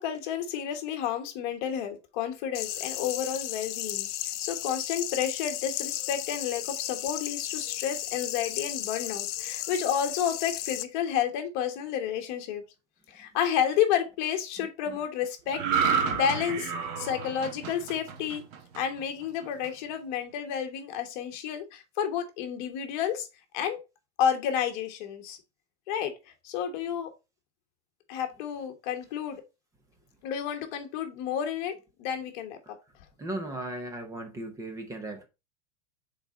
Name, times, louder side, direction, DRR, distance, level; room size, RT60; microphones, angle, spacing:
voice 1, 0.0-4.1 4.4-12.6 13.1-18.4 18.7-23.3 23.5-23.8 24.2-25.4 25.9-26.1 26.4-27.1 28.1-29.4 30.2-32.8, left 8 dB, 40° left, 1.3 m, -31 dB
sound 1, 2.5-10.8, left 14 dB, 70° left, 0.6 m, -34 dB
voice 2, 14.6-15.0 16.1-16.2 32.6-32.7 33.2-35.2, right 1 dB, 10° right, 0.6 m, -37 dB
sound 2, 15.5-19.0 19.4-19.7, right 6 dB, 35° right, 1.0 m, -30 dB
5.8 x 4.2 x 4.0 m
supercardioid pair, 170°, 36 cm